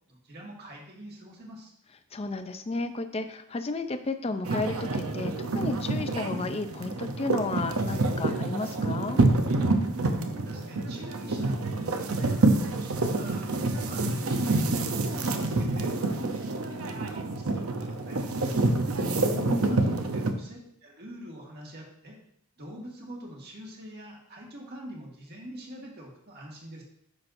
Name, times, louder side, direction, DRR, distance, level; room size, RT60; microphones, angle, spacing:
voice 1, 0.1-1.7 10.4-13.5 13.8-18.5 19.7-22.1 22.6-26.8, right 1 dB, 45° right, -1 dB, 1.7 m, -44 dB
voice 2, 2.1-9.2 19.0-20.0, left 3 dB, 25° left, 9 dB, 0.4 m, -33 dB
sound 1, 4.4-20.3, right 2 dB, 75° right, 0.7 m, -27 dB
9.7 x 6.0 x 2.6 m, 0.72 s
head